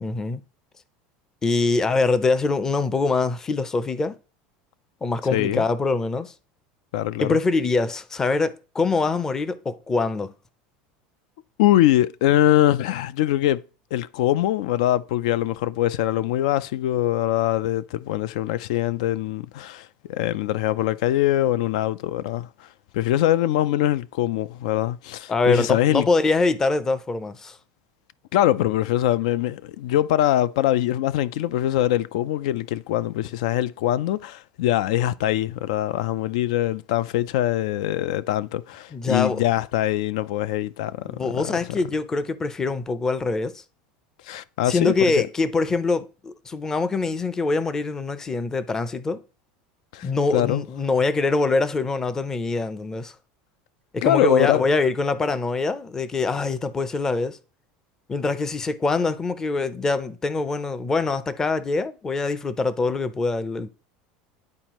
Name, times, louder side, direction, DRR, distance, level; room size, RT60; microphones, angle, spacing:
voice 1, 0.0-0.4 1.4-4.2 5.0-6.3 7.2-10.3 25.3-27.6 38.9-39.4 41.1-43.6 44.7-49.2 50.0-53.1 53.9-57.4 58.1-63.7, left 3 dB, 15° left, 0.5 m, -24 dB
voice 2, 5.3-5.6 6.9-7.4 11.6-13.6 13.9-22.7 22.9-26.1 28.3-41.5 44.2-45.2 49.9-50.7 54.0-54.6, left 13 dB, 80° left, 0.3 m, -23 dB
10.5 x 4.3 x 3.0 m
supercardioid pair, 155°, 4 cm